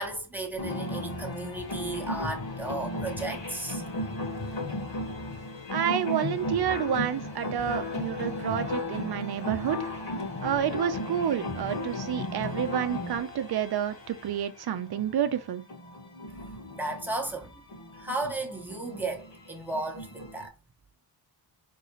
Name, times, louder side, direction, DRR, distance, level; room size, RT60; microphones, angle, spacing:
voice 1, 0.0-3.8 16.4-17.5 18.0-20.5, right 2 dB, 5° right, 1.2 m, -34 dB
sound 1, 0.6-20.5, left 2 dB, 55° left, 2.1 m, -35 dB
voice 2, 5.7-9.9 10.4-15.6, right 9 dB, 55° right, 0.7 m, -29 dB
4.0 x 3.7 x 3.1 m
cardioid pair, 110°, 45 cm